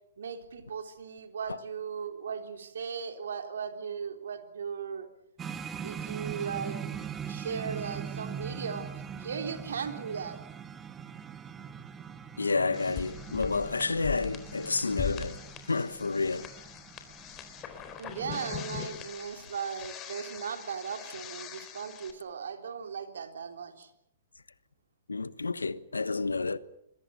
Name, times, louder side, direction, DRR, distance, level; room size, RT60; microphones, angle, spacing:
voice 1, 0.2-5.1 5.8-6.8 7.3-8.9 9.2-10.4 18.0-23.9, right 6 dB, 75° right, 3.6 m, -37 dB
sound 1, 5.4-18.7, right 7 dB, 20° right, 1.6 m, -42 dB
voice 2, 12.4-15.4 15.7-16.5 25.1-26.6, left 3 dB, 90° left, 1.2 m, -30 dB
sound 2, 12.7-22.1, left 9 dB, 30° left, 4.1 m, -42 dB
27.5 x 22.0 x 7.0 m
hypercardioid pair, 120°, 0 cm